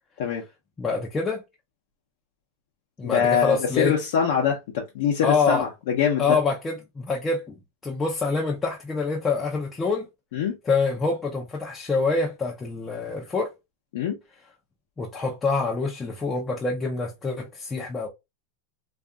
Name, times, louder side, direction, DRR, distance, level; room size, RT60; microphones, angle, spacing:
voice 1, 0.8-1.4 3.0-3.9 5.2-5.6 6.2-10.1 10.7-13.5 15.0-18.1, left 4 dB, 15° left, 0.5 m, -26 dB
voice 2, 3.0-6.4 10.3-10.6 13.9-14.2, left 7 dB, 65° left, 0.6 m, -24 dB
2.6 x 2.4 x 2.2 m
supercardioid pair, 145°, 0 cm